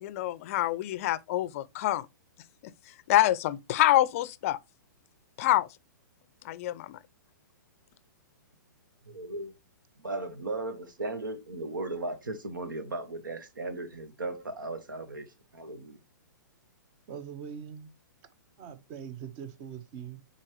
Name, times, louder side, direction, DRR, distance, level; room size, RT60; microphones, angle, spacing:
voice 1, 0.0-2.1 2.6-2.7 3.1-4.6 5.4-5.7 6.4-7.0, left 14 dB, 45° left, 0.4 m, -26 dB
voice 2, 9.1-9.5 10.0-16.0, right 2 dB, 80° right, 1.3 m, -36 dB
voice 3, 17.1-17.9 18.6-20.2, right 8 dB, 35° right, 1.0 m, -42 dB
8.7 x 4.2 x 3.0 m
hypercardioid pair, 120°, 11 cm